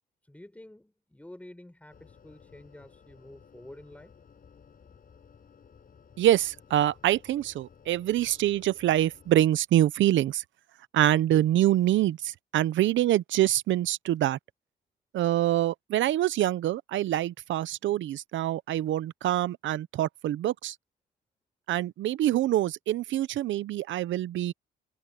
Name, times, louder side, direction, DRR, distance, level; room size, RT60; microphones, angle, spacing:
voice 1, 0.3-4.1, left 1 dB, 5° left, 4.2 m, -49 dB
sound 1, 1.9-9.4, left 6 dB, 45° left, 6.1 m, -56 dB
voice 2, 6.2-10.4 10.9-14.4 15.1-20.7 21.7-24.5, right 13 dB, 75° right, 0.8 m, -25 dB
cardioid pair, 90°, 20 cm